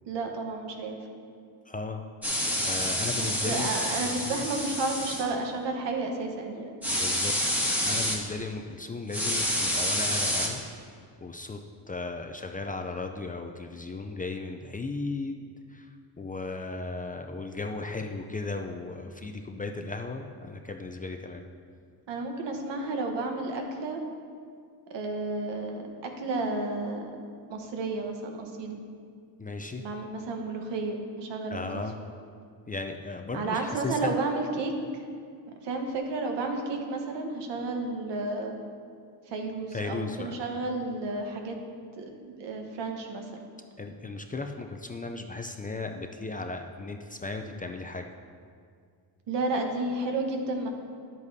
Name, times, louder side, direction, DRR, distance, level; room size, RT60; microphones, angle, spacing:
voice 1, 0.1-1.0 3.1-6.8 22.1-24.0 24.9-27.1 27.5-28.8 29.8-31.8 33.3-35.0 35.6-38.5 39.3-41.6 42.0-43.3 49.3-50.7, right 2 dB, 70° right, 3 dB, 1.2 m, -32 dB
voice 2, 1.7-2.0 2.6-3.7 4.1-4.4 6.9-7.3 7.8-10.6 11.2-11.6 11.9-15.4 15.7-21.4 29.4-29.8 31.5-31.9 32.7-34.1 39.7-40.3 43.8-48.1, left 3 dB, 20° left, 4 dB, 0.4 m, -36 dB
sound 1, 2.2-5.2 6.8-8.2 9.1-10.5, equal, 5° right, 1.4 m, -28 dB
10.5 x 8.2 x 2.7 m, 2.2 s
cardioid pair, 95°, 44 cm